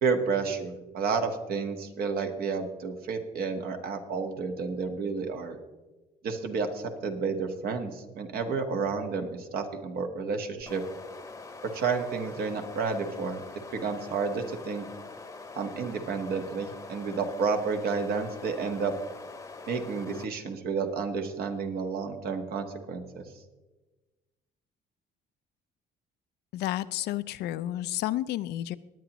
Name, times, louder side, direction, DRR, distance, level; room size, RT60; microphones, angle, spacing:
voice 1, 0.0-5.6 6.2-10.8 11.7-13.4 13.8-14.8 15.5-18.9 19.7-23.2, right 5 dB, 65° right, 5 dB, 1.5 m, -31 dB
sound 1, 10.6-20.3, left 3 dB, 20° left, 0.9 m, -44 dB
voice 2, 26.5-28.8, left 14 dB, 75° left, 14 dB, 0.5 m, -31 dB
18.5 x 9.3 x 3.0 m, 1.2 s
cardioid pair, 110°, 17 cm